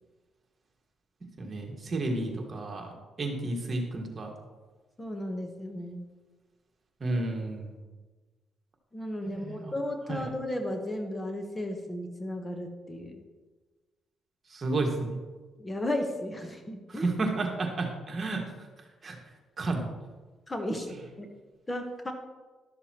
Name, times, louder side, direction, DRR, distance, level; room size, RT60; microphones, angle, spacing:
voice 1, 1.4-2.9 3.2-4.3 7.0-7.7 9.3-9.7 10.1-10.3 14.5-15.2 16.9-18.4 19.0-19.2 19.6-19.8, right 2 dB, 40° right, 1 dB, 1.6 m, -31 dB
voice 2, 5.0-6.0 8.9-13.2 15.6-17.1 20.5-21.3 21.7-22.1, left 1 dB, 20° left, 4 dB, 1.0 m, -34 dB
12.0 x 6.8 x 2.9 m, 1.3 s
cardioid pair, 90°, 0 cm